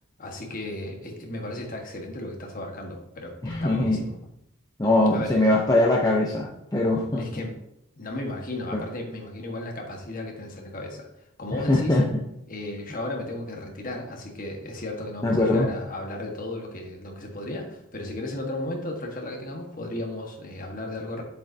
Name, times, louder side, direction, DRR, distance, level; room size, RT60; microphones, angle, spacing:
voice 1, 0.2-4.1 5.1-5.3 7.2-7.6 7.9-11.1 11.4-12.0 12.5-21.2, left 1 dB, 40° left, 1 dB, 1.4 m, -35 dB
voice 2, 3.4-4.1 4.8-7.4 8.7-8.9 11.7-12.1 15.2-15.7, left 2 dB, 15° left, -3 dB, 0.7 m, -22 dB
7.6 x 7.4 x 2.7 m, 0.80 s
head